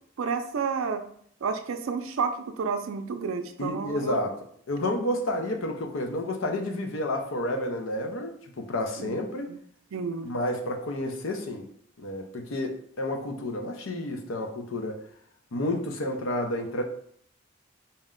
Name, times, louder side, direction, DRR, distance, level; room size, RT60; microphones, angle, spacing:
voice 1, 0.2-1.1 1.4-4.2 9.0-9.2 9.5-9.6 9.9-10.3, right 5 dB, 90° right, 8 dB, 0.4 m, -30 dB
voice 2, 3.6-4.3 4.7-9.5 10.2-11.7 12.0-15.0 15.5-16.8, left 1 dB, 85° left, 4 dB, 0.6 m, -30 dB
4.2 x 2.1 x 3.7 m, 0.63 s
head